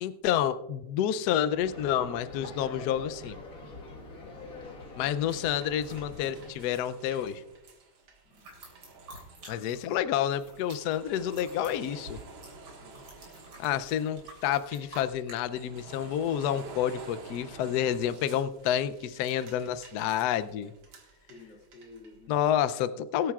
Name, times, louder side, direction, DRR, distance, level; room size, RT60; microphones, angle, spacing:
voice 1, 0.0-3.4 5.0-7.4 9.5-12.2 13.6-20.7 22.3-23.3, left 10 dB, 80° left, 13 dB, 0.8 m, -29 dB
sound 1, 1.5-6.5, left 2 dB, 40° left, 1.9 m, -45 dB
sound 2, 5.3-22.2, right 3 dB, 65° right, 2.3 m, -50 dB
voice 2, 8.2-8.6 12.7-13.1 21.3-22.3, left 3 dB, 60° left, -8 dB, 3.2 m, -53 dB
sound 3, 8.3-10.0 10.2-15.4, right 1 dB, 50° right, 3.6 m, -50 dB
22.5 x 9.0 x 2.4 m, 0.99 s
omnidirectional pair, 2.4 m